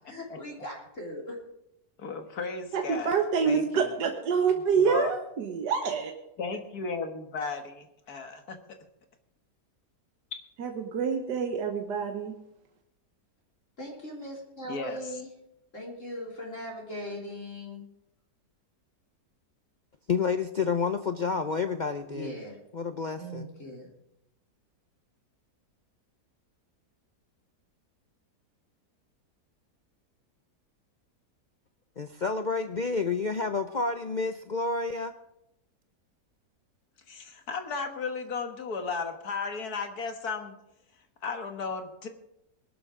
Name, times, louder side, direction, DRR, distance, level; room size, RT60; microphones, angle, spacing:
voice 1, 0.0-1.4 13.8-15.3 15.7-17.8 22.0-22.6 23.2-23.9, equal, 45° left, -3 dB, 3.8 m, -39 dB
voice 2, 2.0-3.2 3.5-3.9 4.8-5.1 6.4-8.6 10.3-10.4 14.7-15.0 37.1-40.5 41.2-42.1, left 4 dB, 65° left, 6 dB, 1.9 m, -35 dB
voice 3, 2.7-6.1 10.6-12.3, right 6 dB, 80° right, 4 dB, 1.7 m, -27 dB
voice 4, 20.1-22.3 22.7-23.5 32.0-35.1, left 4 dB, 80° left, 8 dB, 0.4 m, -29 dB
21.0 x 12.0 x 3.7 m, 0.84 s
omnidirectional pair, 1.8 m